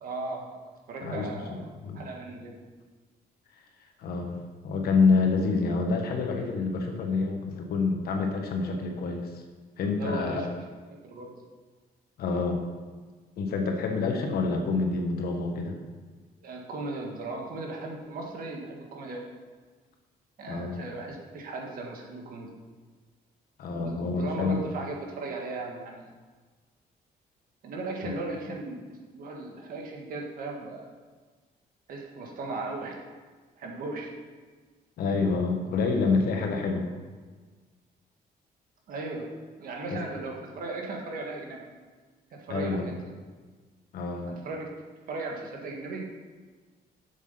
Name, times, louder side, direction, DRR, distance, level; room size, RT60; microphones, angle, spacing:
voice 1, 0.0-0.5 0.9-1.7 2.0-2.6 10.0-10.5 11.0-11.3 13.8-14.0 16.4-19.3 20.4-22.6 23.7-26.1 27.6-30.9 31.9-33.0 33.6-34.2 38.9-41.6 42.3-43.0 44.3-44.7 45.1-46.2, right 3 dB, 65° right, 0 dB, 1.7 m, -37 dB
voice 2, 4.0-4.4 4.6-9.4 9.8-10.4 12.2-12.6 13.4-15.8 20.5-20.8 23.6-24.6 28.0-28.1 35.0-36.9 39.9-40.0 42.5-42.9 43.9-44.3, left 4 dB, 75° left, 3 dB, 1.4 m, -27 dB
7.9 x 7.2 x 5.7 m, 1.4 s
cardioid pair, 165°, 16 cm